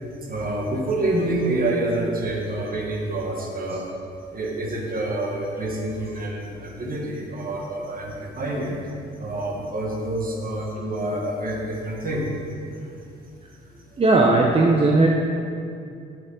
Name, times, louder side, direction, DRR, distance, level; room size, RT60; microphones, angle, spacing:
voice 1, 0.2-3.9 4.3-8.8 9.2-12.3, right 1 dB, 45° right, -1 dB, 1.6 m, -27 dB
voice 2, 14.0-15.1, right 2 dB, 30° right, -1 dB, 0.7 m, -17 dB
8.2 x 7.5 x 3.9 m, 2.5 s
cardioid pair, 90°, 20 cm